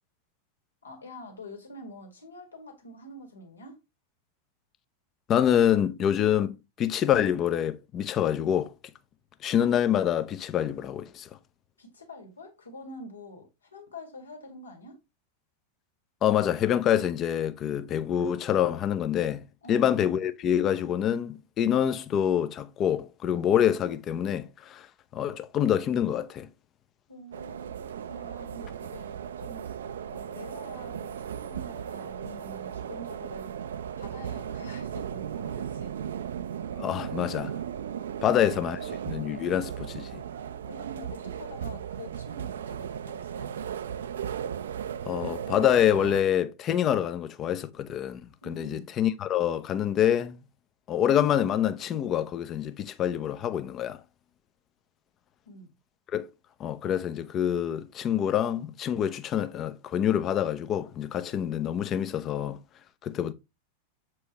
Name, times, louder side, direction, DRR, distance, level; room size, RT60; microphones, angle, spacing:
voice 1, 0.8-3.8 11.8-15.0 19.6-19.9 27.1-29.7 30.1-33.6 34.0-36.0 40.7-43.5 48.4-48.9 55.5-55.7, left 1 dB, 75° left, 2.0 m, -46 dB
voice 2, 5.3-8.7 9.4-11.3 16.2-24.9 25.1-26.5 36.8-37.5 38.2-40.2 45.1-50.4 50.9-54.0 56.1-56.3 56.6-62.6 63.0-63.3, left 10 dB, 30° left, 0.6 m, -26 dB
sound 1, 27.3-46.2, right 9 dB, 65° right, 0.4 m, -36 dB
7.3 x 4.7 x 3.0 m
figure-of-eight pair, 90°, 0 cm